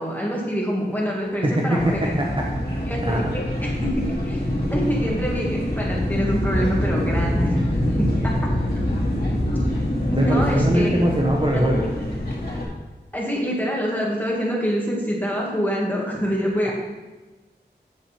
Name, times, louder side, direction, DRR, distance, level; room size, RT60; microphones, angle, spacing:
voice 1, 0.0-2.2 2.8-4.4 4.7-7.5 8.0-8.1 8.4-8.5 10.1-11.7 13.1-16.7, equal, 10° left, -3 dB, 2.3 m, -26 dB
voice 2, 1.4-3.2 10.1-11.8 16.6-16.7, right 1 dB, 30° right, -2 dB, 1.0 m, -22 dB
sound 1, 1.8-12.7, left 1 dB, 55° left, 2.5 m, -25 dB
8.6 x 6.9 x 4.4 m, 1.2 s
wide cardioid pair, 90°, 18 cm